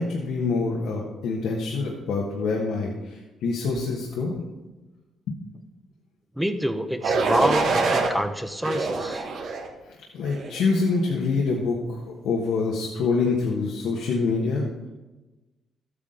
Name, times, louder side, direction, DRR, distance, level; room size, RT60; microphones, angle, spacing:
voice 1, 0.0-4.4 5.3-5.4 9.9-14.7, left 4 dB, 80° left, -2 dB, 1.4 m, -26 dB
voice 2, 6.4-9.3, equal, 5° right, 9 dB, 0.9 m, -27 dB
sound 1, 7.0-8.1 8.6-9.7 10.3-10.6, right 4 dB, 70° right, 1.5 m, -25 dB
13.0 x 8.4 x 3.9 m, 1.1 s
cardioid pair, 90°, 0 cm